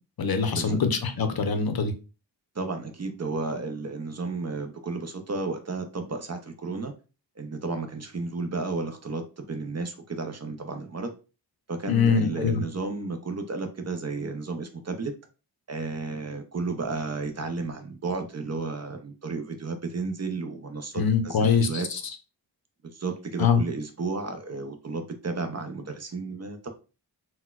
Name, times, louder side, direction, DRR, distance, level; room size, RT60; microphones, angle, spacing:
voice 1, 0.2-1.9 11.9-12.6 20.9-22.0 23.4-23.6, left 6 dB, 55° left, 8 dB, 0.6 m, -23 dB
voice 2, 2.6-6.9 7.4-11.1 11.7-15.1 15.7-21.9 22.8-26.7, right 3 dB, 40° right, 6 dB, 0.5 m, -33 dB
3.9 x 2.2 x 2.2 m, 0.32 s
wide cardioid pair, 115°, 43 cm